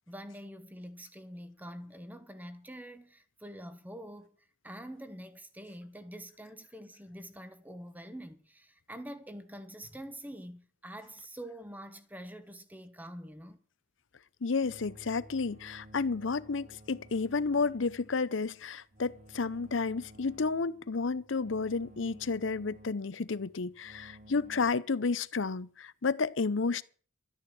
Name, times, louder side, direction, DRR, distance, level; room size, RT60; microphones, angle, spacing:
voice 1, 0.1-4.4 4.6-13.6, equal, 10° right, 1.1 m, -46 dB
voice 2, 14.4-26.8, left 4 dB, 65° left, 0.7 m, -31 dB
sound 1, 14.6-24.7, right 1 dB, 40° right, 2.3 m, -55 dB
12.5 x 9.8 x 7.6 m
head